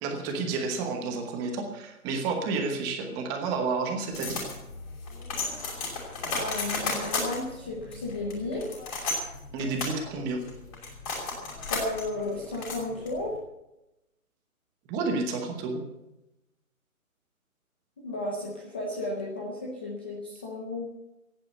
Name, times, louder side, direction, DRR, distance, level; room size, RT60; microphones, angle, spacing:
voice 1, 0.0-4.4 9.5-10.4 14.9-15.8, right 4 dB, 10° right, 3 dB, 1.0 m, -30 dB
sound 1, 4.1-13.4, left 3 dB, 25° left, 5.5 m, -34 dB
voice 2, 6.2-8.7 11.7-13.4 18.0-20.9, left 2 dB, 10° left, -3 dB, 0.7 m, -33 dB
16.0 x 10.5 x 8.2 m, 0.92 s
hypercardioid pair, 160°, 43 cm